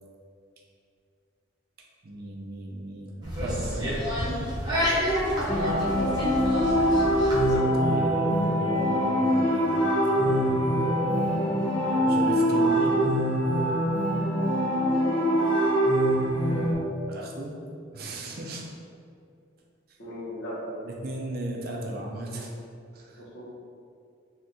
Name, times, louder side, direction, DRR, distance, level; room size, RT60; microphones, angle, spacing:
voice 1, 2.0-4.0 7.7-9.7 10.2-10.7 11.8-12.9 16.4-17.5 17.9-18.6 20.8-22.5 22.9-23.2, right 1 dB, 50° right, -1 dB, 0.5 m, -36 dB
sound 1, 3.2-7.6, equal, 20° right, 0.8 m, -29 dB
sound 2, 5.5-16.7, equal, 30° left, 0.5 m, -24 dB
voice 2, 5.8-6.1 14.9-15.1 20.0-20.8 21.7-21.8 22.3-22.5 23.2-23.4, equal, 80° left, -6 dB, 0.9 m, -38 dB
2.7 x 2.5 x 3.5 m, 2.4 s
head